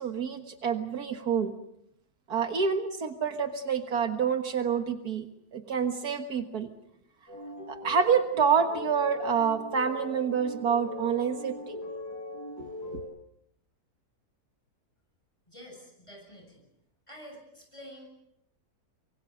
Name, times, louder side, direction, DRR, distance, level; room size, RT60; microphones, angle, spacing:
voice 1, 0.0-1.5 2.3-5.3 5.5-6.7 7.7-11.8 12.6-13.0, right 6 dB, 70° right, 7 dB, 2.0 m, -28 dB
sound 1, 7.3-13.0, left 1 dB, 80° left, 8.2 m, -40 dB
voice 2, 15.5-16.6 17.1-18.1, equal, 20° left, 1 dB, 8.2 m, -48 dB
25.0 x 24.0 x 6.7 m, 0.75 s
omnidirectional pair, 1.7 m